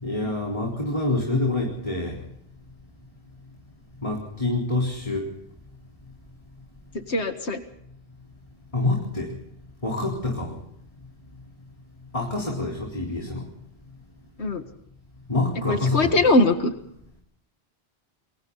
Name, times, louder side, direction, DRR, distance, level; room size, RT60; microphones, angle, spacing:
voice 1, 0.0-2.2 4.0-5.3 8.7-9.3 9.8-10.6 12.1-13.5 15.3-16.2, left 2 dB, 30° left, -1 dB, 4.1 m, -26 dB
voice 2, 7.1-7.6 14.4-14.6 15.7-16.7, left 2 dB, 85° left, 7 dB, 2.1 m, -21 dB
29.5 x 23.0 x 4.0 m, 0.72 s
omnidirectional pair, 1.1 m